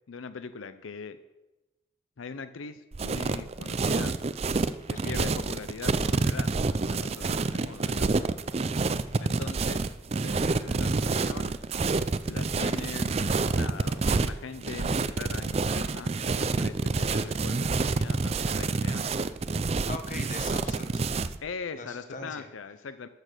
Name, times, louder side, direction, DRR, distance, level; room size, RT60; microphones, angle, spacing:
voice 1, 0.1-1.2 2.2-4.2 4.9-8.3 9.2-9.9 10.2-11.5 12.3-19.2 21.4-23.1, left 5 dB, 90° left, 12 dB, 0.6 m, -41 dB
sound 1, 2.9-21.4, right 3 dB, 30° right, 0.4 m, -28 dB
voice 2, 19.9-21.0 21.7-22.5, left 3 dB, 40° left, 6 dB, 1.2 m, -40 dB
13.5 x 6.6 x 6.6 m, 1.1 s
head